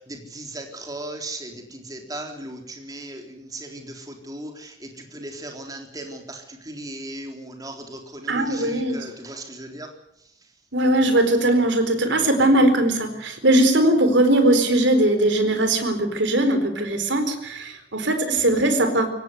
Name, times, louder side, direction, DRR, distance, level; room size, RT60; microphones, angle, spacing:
voice 1, 0.1-4.7 5.1-9.9, right 1 dB, 20° right, 3 dB, 3.8 m, -37 dB
voice 2, 8.3-9.0 10.7-19.1, right 1 dB, 65° right, 8 dB, 4.3 m, -20 dB
23.5 x 18.0 x 8.1 m, 0.76 s
head